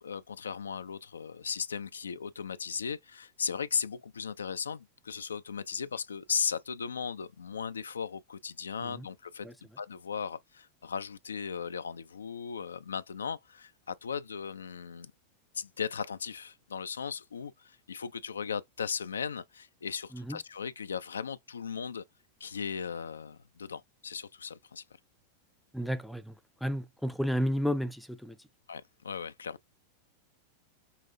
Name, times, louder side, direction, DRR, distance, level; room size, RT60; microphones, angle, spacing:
voice 1, 0.0-9.5 9.8-15.1 15.5-22.0 22.4-24.8 28.7-29.6, left 6 dB, 70° left, 0.3 m, -37 dB
voice 2, 25.7-26.4 26.6-28.4, equal, ahead, 0.5 m, -32 dB
5.6 x 2.4 x 2.6 m
figure-of-eight pair, 90°, 0 cm